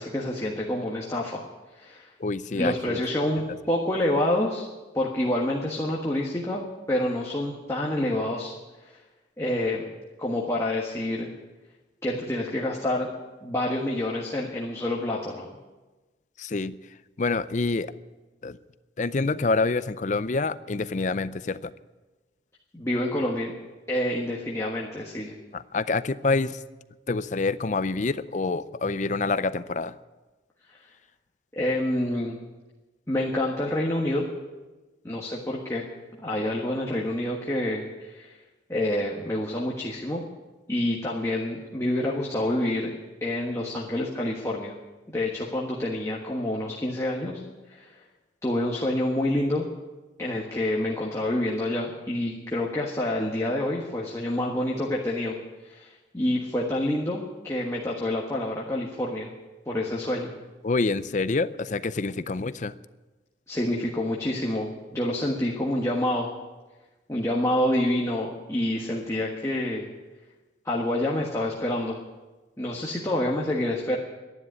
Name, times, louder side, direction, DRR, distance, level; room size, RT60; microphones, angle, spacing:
voice 1, 0.0-1.4 1.8-2.1 2.5-4.7 4.9-8.5 8.8-8.9 9.4-9.9 10.2-11.3 12.0-13.1 13.4-15.5 22.7-23.5 23.9-25.3 30.7-30.8 31.5-32.4 33.1-34.3 35.0-35.9 36.2-38.4 38.7-40.2 40.7-42.9 43.2-44.7 45.1-47.4 47.7-47.9 48.4-49.7 50.2-55.4 55.6-59.3 59.7-60.3 63.5-66.3 67.1-69.9 70.6-72.0 72.6-74.0, left 1 dB, 15° left, -3 dB, 1.4 m, -27 dB
voice 2, 2.2-3.0 16.4-16.8 17.2-17.9 18.4-18.6 19.0-21.7 25.5-26.6 27.1-30.0 60.6-62.7, left 3 dB, 40° left, 15 dB, 0.5 m, -27 dB
12.5 x 11.0 x 9.5 m, 1.2 s
head